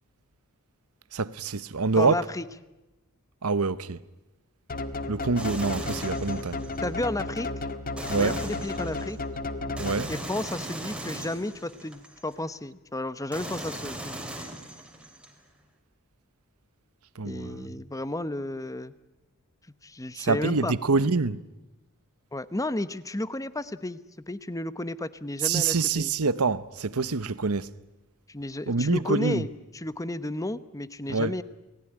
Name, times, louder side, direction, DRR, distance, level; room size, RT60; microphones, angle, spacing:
voice 1, 1.1-2.2 3.4-4.0 5.1-6.6 8.1-8.4 9.8-10.1 17.2-17.7 20.2-21.4 25.4-27.7 28.7-29.4 31.1-31.3, right 4 dB, 75° right, 0.9 m, -26 dB
voice 2, 2.0-2.4 6.8-7.5 8.2-9.2 10.1-14.2 17.2-18.9 19.8-20.7 22.3-24.0 24.3-26.1 28.3-29.5 29.7-31.4, left 1 dB, 15° left, 0.9 m, -32 dB
sound 1, 4.7-10.5, left 2 dB, 40° left, 1.7 m, -33 dB
sound 2, 5.4-6.9 8.0-9.2 9.8-12.3 13.3-15.3, right 1 dB, 5° right, 3.5 m, -39 dB
29.5 x 19.5 x 10.0 m
head